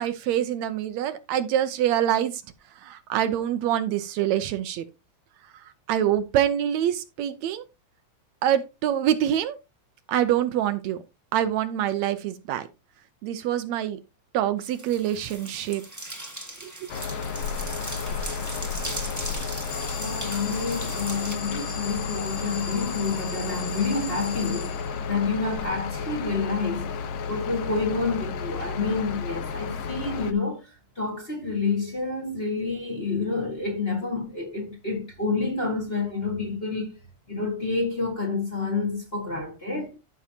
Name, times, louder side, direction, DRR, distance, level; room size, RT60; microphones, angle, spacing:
voice 1, 0.0-2.3 2.8-4.8 5.9-7.6 8.4-9.6 10.1-11.0 11.3-12.7 13.2-14.0 14.3-15.8 16.6-16.9, right 11 dB, 75° right, 1.9 m, -25 dB
sound 1, 14.6-21.3, right 1 dB, 10° right, 0.9 m, -38 dB
sound 2, 16.9-30.3, left 5 dB, 65° left, 1.4 m, -32 dB
Alarm, 19.7-25.3, left 5 dB, 45° left, 1.6 m, -38 dB
voice 2, 20.0-24.8 25.1-26.9 27.3-30.7 31.0-36.9 37.3-40.0, left 4 dB, 25° left, 1.8 m, -28 dB
13.5 x 6.2 x 2.8 m
omnidirectional pair, 3.3 m